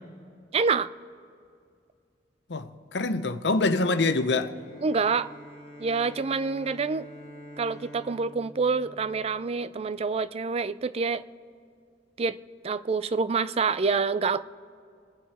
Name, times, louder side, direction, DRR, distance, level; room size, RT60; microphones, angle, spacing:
voice 1, 0.5-0.9 4.8-5.3 5.8-7.1 7.6-11.2 12.2-12.4 12.6-14.4, right 4 dB, 35° right, 0.4 m, -27 dB
voice 2, 2.5-4.5, left 3 dB, 70° left, 0.8 m, -25 dB
Bowed string instrument, 4.5-10.0, equal, 5° right, 3.5 m, -47 dB
27.5 x 9.1 x 4.3 m
head